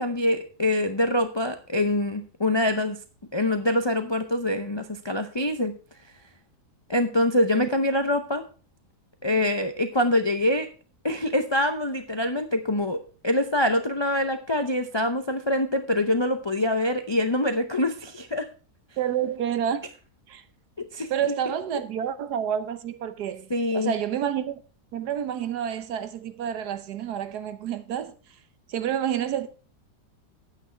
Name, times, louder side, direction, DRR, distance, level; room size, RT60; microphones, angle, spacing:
voice 1, 0.0-3.0 3.3-5.7 6.9-8.4 9.2-10.7 11.0-13.0 13.2-18.5 20.9-21.3 23.5-23.9, left 1 dB, 45° left, 0.3 m, -25 dB
voice 2, 19.0-19.8 20.3-20.4 21.1-23.5 23.7-24.6 24.9-28.1 28.7-29.5, right 9 dB, 80° right, 1.4 m, -29 dB
8.9 x 8.9 x 4.5 m
omnidirectional pair, 1.7 m